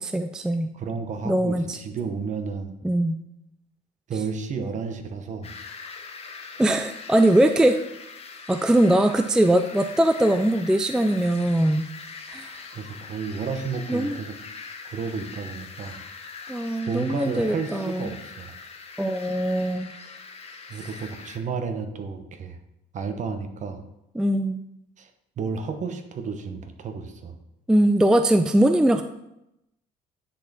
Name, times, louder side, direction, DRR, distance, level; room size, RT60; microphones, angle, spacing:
voice 1, 0.0-0.7 1.2-1.8 2.8-3.2 6.6-7.8 8.5-11.8 12.3-12.6 13.9-14.2 16.5-18.1 19.0-19.9 24.2-24.6 27.7-29.0, right 1 dB, 5° right, 8 dB, 0.3 m, -21 dB
voice 2, 0.7-2.7 4.1-5.5 12.7-14.3 14.8-16.0 16.9-18.5 20.7-22.6 22.9-23.8 25.0-25.1 25.4-27.4, right 5 dB, 45° right, 7 dB, 1.0 m, -32 dB
sound 1, 5.4-21.4, left 5 dB, 35° left, 1.0 m, -42 dB
9.7 x 4.3 x 4.2 m, 0.86 s
cardioid pair, 110°, 17 cm